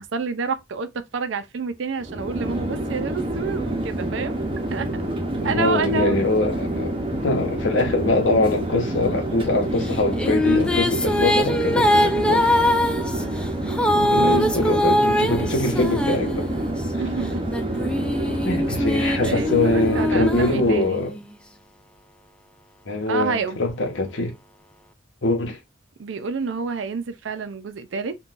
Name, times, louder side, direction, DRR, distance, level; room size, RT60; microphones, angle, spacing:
voice 1, 0.0-4.3 4.7-4.9 5.4-6.2 14.1-14.7 16.9-17.5 18.0-18.1 19.0-21.1 23.1-23.6 26.0-28.2, right 5 dB, 80° right, 0.5 m, -29 dB
Chatter / Fixed-wing aircraft airplane, 2.0-20.9, right 1 dB, 30° right, 0.7 m, -27 dB
voice 2, 5.4-12.6 13.9-16.5 18.4-21.2 22.9-24.3 25.2-25.6, left 2 dB, 75° left, 0.9 m, -23 dB
sound 1, 9.9-16.9 17.5-21.2, left 1 dB, 5° left, 0.3 m, -23 dB
3.7 x 2.3 x 2.4 m
head